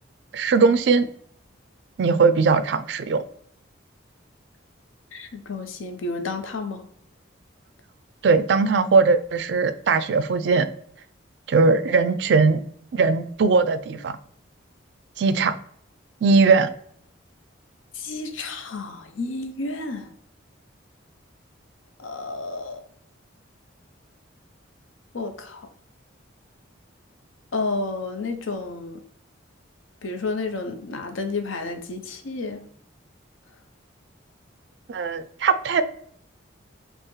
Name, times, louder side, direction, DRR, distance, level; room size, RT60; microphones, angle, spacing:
voice 1, 0.3-1.1 2.0-3.2 8.2-10.7 11.5-12.6 12.9-14.2 15.2-15.5 16.2-16.7 34.9-35.8, right 4 dB, 60° right, 12 dB, 0.3 m, -19 dB
voice 2, 5.1-6.8 17.9-20.1 22.0-22.8 25.1-25.7 27.5-29.0 30.0-32.7, left 3 dB, 80° left, 6 dB, 0.6 m, -31 dB
5.3 x 2.0 x 3.1 m, 0.63 s
head